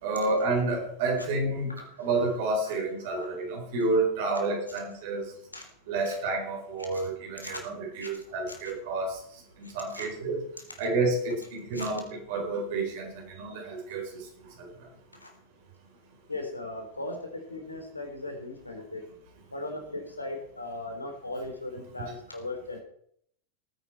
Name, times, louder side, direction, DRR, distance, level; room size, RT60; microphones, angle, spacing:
voice 1, 0.0-5.3 5.9-9.2 9.6-10.4 10.8-14.1 14.6-14.7, right 3 dB, 50° right, 2 dB, 4.5 m, -29 dB
voice 2, 9.6-10.1 11.7-11.9 15.1-15.3 16.3-19.0 19.5-22.8, left 2 dB, 80° left, 4 dB, 3.3 m, -38 dB
19.0 x 9.5 x 4.5 m, 0.68 s
figure-of-eight pair, 90°, 0 cm